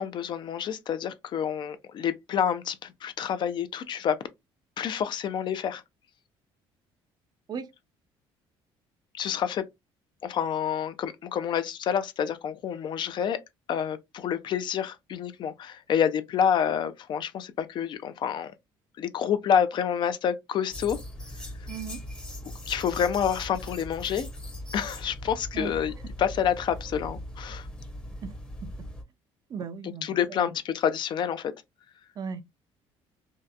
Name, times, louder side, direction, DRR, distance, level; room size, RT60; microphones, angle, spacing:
voice 1, 0.0-4.2 4.8-5.8 9.1-9.6 10.2-13.4 13.7-18.5 19.0-21.0 21.6-21.7 22.7-24.3 24.7-25.9 26.2-27.7 30.0-31.5, left 8 dB, 45° left, 0.4 m, -28 dB
sound 1, 20.7-29.0, left 1 dB, 10° left, 0.7 m, -40 dB
voice 2, 21.7-22.0 25.5-25.8 28.2-28.3 28.6-28.9 29.5-30.5 32.2-32.4, right 6 dB, 40° right, 0.4 m, -37 dB
2.7 x 2.1 x 2.3 m
cardioid pair, 125°, 11 cm